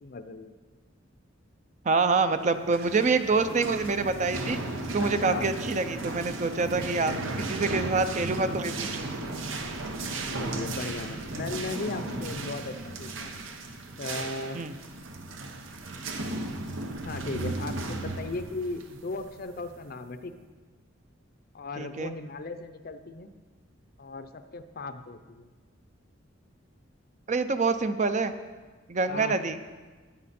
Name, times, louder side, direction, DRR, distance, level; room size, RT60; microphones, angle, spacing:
voice 1, 0.0-0.5 5.0-5.5 7.0-7.5 10.4-13.4 14.0-14.6 17.0-20.3 21.5-23.3 24.0-25.5 29.1-29.4, left 3 dB, 50° left, 10 dB, 0.6 m, -37 dB
voice 2, 1.8-4.6 4.9-7.1 7.4-9.2 14.5-14.7 21.8-22.1 27.3-28.3 28.9-29.6, right 4 dB, 40° right, 10 dB, 0.5 m, -26 dB
sound 1, 2.5-20.0, right 2 dB, 90° right, 1.0 m, -35 dB
13.5 x 9.2 x 4.3 m, 1.4 s
head